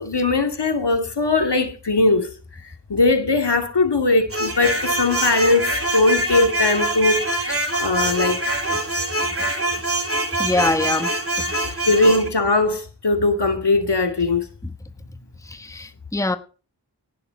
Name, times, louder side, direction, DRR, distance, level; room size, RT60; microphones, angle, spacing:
voice 1, 0.0-2.3 2.6-8.4 11.9-14.5, left 3 dB, 75° left, 2.2 m, -20 dB
sound 1, 4.3-12.3, right 1 dB, 30° right, 2.9 m, -24 dB
voice 2, 10.4-11.8 14.6-14.7 15.4-16.4, left 2 dB, 10° left, 1.0 m, -25 dB
17.5 x 6.9 x 5.2 m
wide cardioid pair, 65°, 41 cm